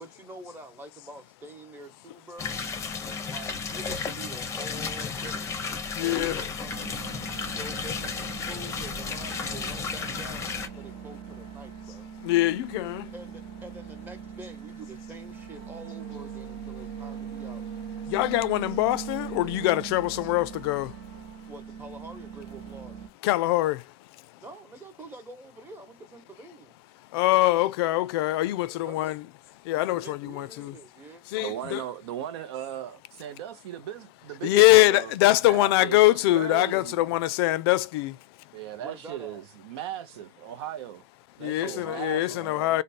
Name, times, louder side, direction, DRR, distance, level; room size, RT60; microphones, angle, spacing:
voice 1, 0.0-2.6 3.3-5.6 5.9-7.1 7.5-12.1 13.1-17.7 21.5-23.0 24.4-26.7 28.6-29.1 29.7-31.8 38.8-39.4 41.6-42.7, right 2 dB, 15° right, 0.9 m, -46 dB
sound 1, 2.4-10.7, left 5 dB, 20° left, 0.6 m, -33 dB
voice 2, 5.9-6.4 7.4-7.5 12.2-13.1 18.1-21.0 23.2-23.9 27.1-29.2 29.6-30.7 31.3-31.8 34.4-38.2 41.4-42.8, left 17 dB, 65° left, 0.4 m, -23 dB
sound 2, 6.6-23.1, right 7 dB, 60° right, 0.9 m, -41 dB
voice 3, 31.4-35.1 35.5-37.0 38.5-41.0 41.4-42.8, right 11 dB, 75° right, 0.6 m, -37 dB
3.3 x 2.1 x 4.1 m
supercardioid pair, 135°, 14 cm